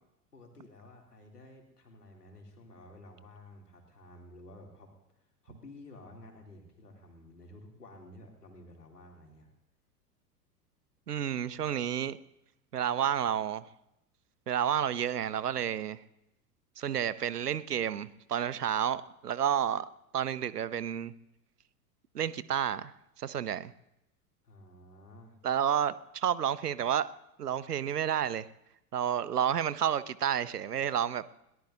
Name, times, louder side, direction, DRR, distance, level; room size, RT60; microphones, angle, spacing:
voice 1, 0.3-4.9 5.4-9.5 24.4-25.4, left 1 dB, 80° left, 1 dB, 3.1 m, -52 dB
voice 2, 11.1-12.2 12.7-13.6 14.5-16.0 16.8-21.1 22.1-23.7 25.4-27.1 27.4-28.5 28.9-31.2, right 9 dB, 80° right, 18 dB, 0.8 m, -30 dB
21.5 x 18.5 x 2.7 m, 0.85 s
figure-of-eight pair, 85°, 46 cm